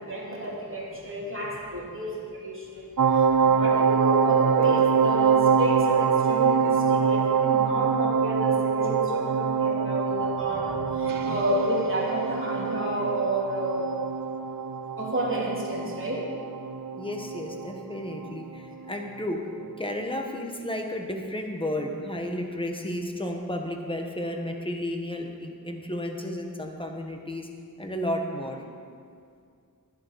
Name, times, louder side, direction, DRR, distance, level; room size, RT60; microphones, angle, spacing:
voice 1, 0.0-2.8 3.2-13.9 15.0-16.3, right 1 dB, 35° right, -5 dB, 3.0 m, -31 dB
sound 1, 3.0-18.5 18.9-19.0, right 6 dB, 60° right, 0.6 m, -24 dB
voice 2, 10.5-11.3 17.0-19.4 19.8-27.5 27.8-28.6, left 1 dB, 15° left, 2 dB, 1.3 m, -33 dB
12.0 x 11.0 x 4.8 m, 2.3 s
wide cardioid pair, 45°, 37 cm